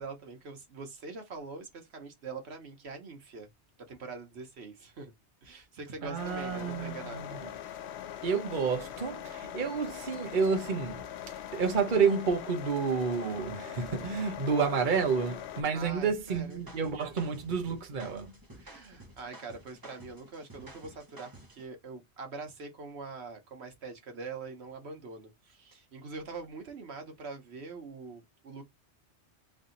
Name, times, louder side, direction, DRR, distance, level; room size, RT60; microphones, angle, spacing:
voice 1, 0.0-3.5 3.8-5.1 5.4-7.4 15.7-16.6 18.5-28.6, right 4 dB, 70° right, 1.2 m, -44 dB
voice 2, 6.0-7.5 8.2-11.0 11.5-18.3, right 5 dB, 45° right, 1.0 m, -30 dB
sound 1, 6.2-15.6, left 10 dB, 75° left, 0.8 m, -42 dB
sound 2, 16.3-21.7, right 1 dB, 20° right, 1.0 m, -52 dB
3.3 x 2.7 x 3.8 m
omnidirectional pair, 1.2 m